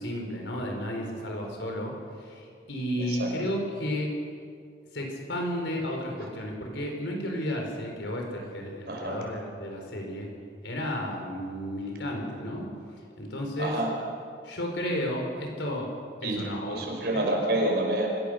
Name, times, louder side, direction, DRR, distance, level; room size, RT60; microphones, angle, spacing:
voice 1, 0.0-1.9 2.2-4.1 4.9-10.3 10.6-12.7 13.2-13.7 14.4-15.9 16.2-16.8 17.1-17.2, equal, 85° left, 1 dB, 4.8 m, -32 dB
voice 2, 3.0-3.3 8.9-9.2 13.6-13.9 16.2-18.1, right 1 dB, 60° right, 0 dB, 5.3 m, -28 dB
26.5 x 16.0 x 6.7 m, 2.3 s
head